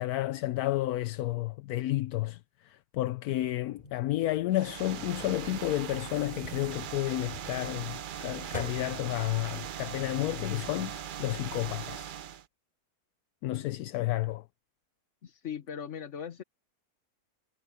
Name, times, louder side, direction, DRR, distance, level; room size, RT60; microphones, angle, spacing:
voice 1, 0.0-12.1 13.4-14.4, left 15 dB, 80° left, 1.1 m, -31 dB
sound 1, 3.8-9.2, left 1 dB, 30° left, 3.8 m, -48 dB
sound 2, 4.5-12.5, right 9 dB, 85° right, 0.4 m, -40 dB
voice 2, 13.5-13.8 15.2-16.4, left 8 dB, 55° left, 1.4 m, -40 dB
omnidirectional pair, 1.6 m